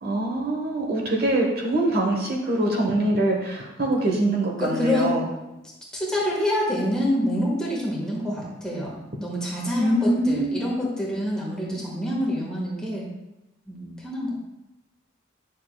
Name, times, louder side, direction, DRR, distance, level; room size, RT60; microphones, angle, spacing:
voice 1, 0.0-5.2 9.8-10.6, right 1 dB, 55° right, -1 dB, 1.2 m, -24 dB
voice 2, 4.6-5.1 5.9-13.1 13.7-14.3, left 1 dB, 5° left, -5 dB, 1.7 m, -26 dB
10.0 x 6.6 x 2.4 m, 0.95 s
head